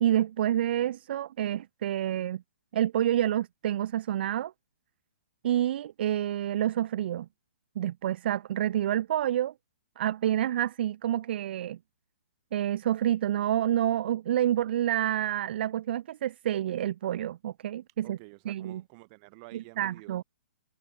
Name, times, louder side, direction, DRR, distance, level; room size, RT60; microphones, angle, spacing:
voice 1, 0.0-2.4 2.7-4.5 5.4-7.3 7.8-9.5 10.0-11.8 12.5-18.2 18.5-18.8 19.5-20.2, right 11 dB, 55° right, 0.4 m, -28 dB
voice 2, 18.0-20.2, right 31 dB, 35° right, 2.5 m, -50 dB
hypercardioid pair, 140°, 7 cm